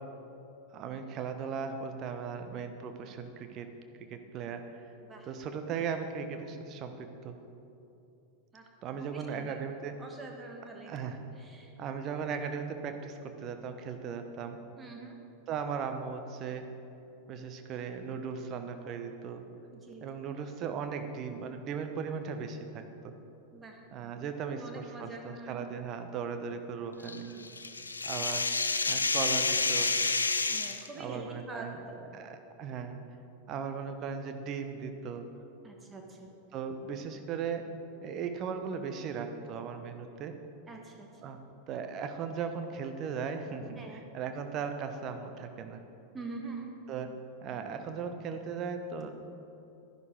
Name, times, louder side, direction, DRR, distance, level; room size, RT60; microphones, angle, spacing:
voice 1, 0.7-3.7 4.1-4.9 5.3-7.3 8.8-9.9 10.9-11.2 11.8-14.6 15.5-16.7 17.3-19.4 20.0-23.1 23.9-27.3 28.0-28.4 28.9-30.0 30.9-33.0 33.5-35.3 36.5-37.6 38.0-40.3 41.2-41.4 41.7-45.8 46.9-47.1 47.4-49.1, right 6 dB, 35° right, 7 dB, 1.0 m, -37 dB
voice 2, 9.0-9.6 10.0-10.9 11.4-11.7 14.8-15.2 19.7-20.1 23.5-23.8 24.5-25.7 27.0-27.6 30.5-32.0 35.6-36.3 40.7-41.1 43.8-44.0 46.1-46.7, right 3 dB, 15° right, 1 dB, 1.3 m, -45 dB
sound 1, 27.1-30.9, left 4 dB, 75° left, 0.6 m, -29 dB
11.0 x 11.0 x 4.7 m, 2.8 s
figure-of-eight pair, 90°, 0 cm